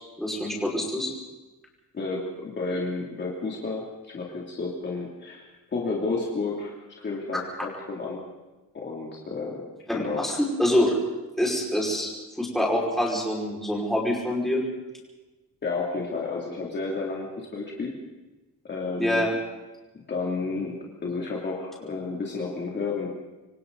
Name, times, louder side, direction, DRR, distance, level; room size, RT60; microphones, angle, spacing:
voice 1, 0.2-1.1 10.0-10.9 11.4-12.1 12.4-14.6 19.0-19.3, left 1 dB, ahead, -4 dB, 5.3 m, -25 dB
voice 2, 1.9-5.4 5.7-8.2 8.7-9.6 9.9-10.2 15.6-18.0 18.6-19.3 20.1-23.1, left 3 dB, 35° left, -3 dB, 2.9 m, -31 dB
26.5 x 24.5 x 4.1 m, 1.1 s
wide cardioid pair, 175°, 31 cm